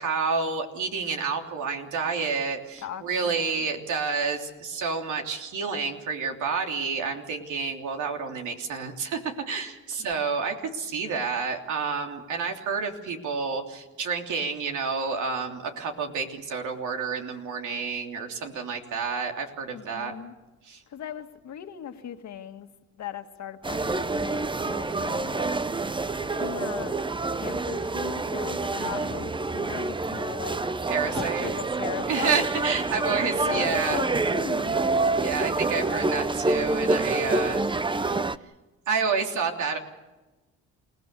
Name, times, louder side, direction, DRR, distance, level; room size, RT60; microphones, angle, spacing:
voice 1, 0.0-20.1 20.6-20.8 28.8-29.2 30.9-31.5 32.1-34.0 35.2-38.1 38.9-39.8, right 5 dB, 75° right, 2 dB, 3.3 m, -29 dB
voice 2, 2.8-3.7 10.0-10.1 19.7-20.3 20.9-22.7 23.0-25.6 26.3-27.0 27.3-30.6 31.1-32.5 33.5-34.8, left 9 dB, 65° left, 6 dB, 1.9 m, -38 dB
sound 1, 23.6-38.4, right 3 dB, 15° right, 0.7 m, -27 dB
29.0 x 18.0 x 6.9 m, 1.1 s
cardioid pair, 90°, 30 cm